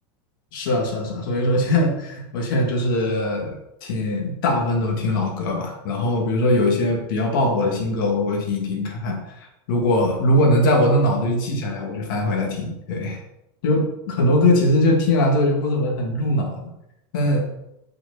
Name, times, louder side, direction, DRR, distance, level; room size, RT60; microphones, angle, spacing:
voice 1, 0.5-3.6 3.8-9.2 9.7-13.2 13.6-16.7 17.1-17.5, left 1 dB, 55° left, 1 dB, 2.2 m, -21 dB
6.3 x 4.8 x 6.2 m, 0.84 s
supercardioid pair, 180°, 13 cm